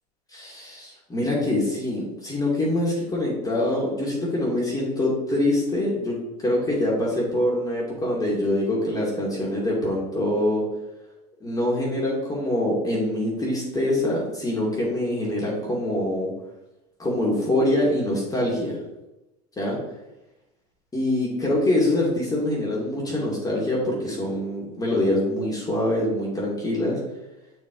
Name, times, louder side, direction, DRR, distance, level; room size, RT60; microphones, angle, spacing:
voice 1, 0.3-10.6 11.4-16.3 17.0-18.8 19.6-19.8 20.9-27.0, left 1 dB, 15° left, -5 dB, 2.5 m, -24 dB
8.4 x 4.7 x 3.9 m, 0.95 s
hypercardioid pair, 95°, 21 cm